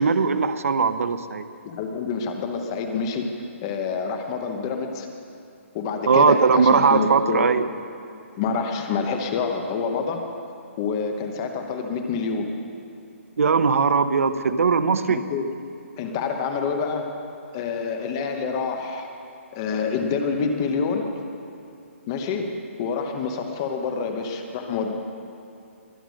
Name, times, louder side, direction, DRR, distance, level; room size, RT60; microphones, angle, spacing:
voice 1, 0.0-1.5 6.0-7.7 13.4-15.2, right 5 dB, 80° right, 11 dB, 0.8 m, -19 dB
voice 2, 1.6-3.4 3.6-5.1 5.7-7.4 8.4-10.3 10.8-12.5 15.0-15.5 16.0-17.1 17.5-19.1 19.5-21.1 22.1-24.9, left 5 dB, 20° left, 4 dB, 1.0 m, -27 dB
22.5 x 8.9 x 6.4 m, 2.6 s
hypercardioid pair, 175°, 7 cm